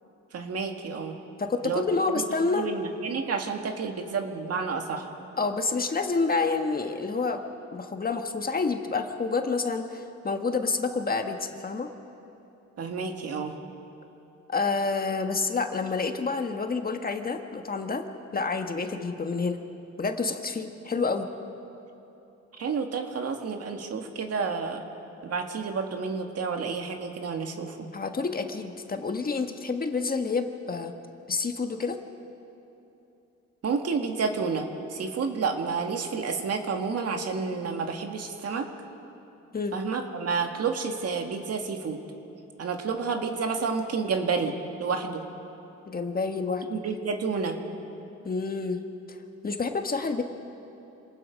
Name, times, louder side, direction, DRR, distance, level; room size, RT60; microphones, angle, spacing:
voice 1, 0.3-1.2 1.6-1.8 2.1-2.2 2.5-5.1 12.8-13.5 22.6-24.8 25.2-27.9 33.6-38.7 39.7-42.0 42.6-45.2 46.7-47.6, right 5 dB, 55° right, 4 dB, 2.0 m, -30 dB
voice 2, 1.4-2.7 5.4-7.4 7.7-11.9 14.5-18.1 18.3-19.6 20.0-21.3 27.9-30.9 31.3-32.0 39.5-39.7 45.9-46.6 48.2-48.8 49.1-49.2 49.4-50.2, left 4 dB, 30° left, 5 dB, 1.5 m, -28 dB
27.5 x 19.0 x 5.3 m, 2.9 s
cardioid pair, 90°, 30 cm